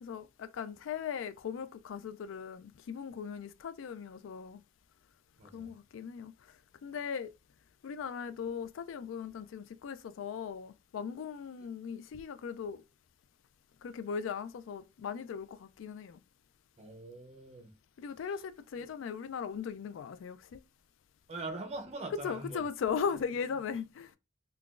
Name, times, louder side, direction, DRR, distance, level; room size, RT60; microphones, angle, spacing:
voice 1, 0.0-4.6 5.5-6.6 6.8-7.3 7.8-12.8 13.8-16.2 18.0-20.6 22.2-24.1, left 6 dB, 80° left, 0.3 m, -38 dB
voice 2, 5.4-5.7 16.8-17.7 18.8-18.9 21.3-22.6, right 2 dB, 35° right, 0.6 m, -42 dB
3.7 x 2.3 x 2.4 m
head